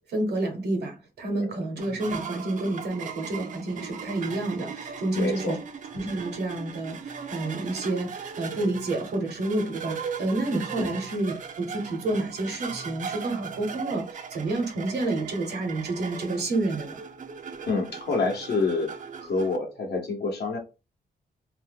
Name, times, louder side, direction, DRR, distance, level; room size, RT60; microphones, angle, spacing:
voice 1, 0.1-5.6 5.9-17.0, right 2 dB, 75° right, 1.0 m, -29 dB
sound 1, 1.8-19.6, right 6 dB, 50° right, 0.5 m, -38 dB
voice 2, 5.1-5.6 10.8-10.9 17.7-18.9 19.2-20.6, left 3 dB, 75° left, 0.9 m, -27 dB
2.7 x 2.1 x 3.5 m
wide cardioid pair, 120°, 17 cm